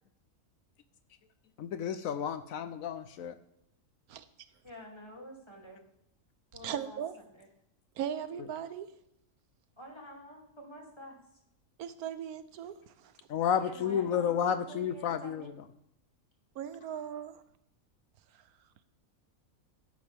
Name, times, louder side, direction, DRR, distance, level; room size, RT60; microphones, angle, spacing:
voice 1, 1.6-3.3 13.3-15.4, left 8 dB, 70° left, 12 dB, 1.0 m, -31 dB
voice 2, 4.6-5.8 6.5-7.0 7.3-7.5 9.8-11.2 13.6-15.6, equal, 20° left, -1 dB, 2.7 m, -48 dB
voice 3, 6.6-7.1 8.0-8.9 11.8-13.1 16.6-17.4, right 9 dB, 90° right, 13 dB, 1.2 m, -38 dB
13.0 x 10.5 x 3.4 m, 0.77 s
omnidirectional pair, 1.5 m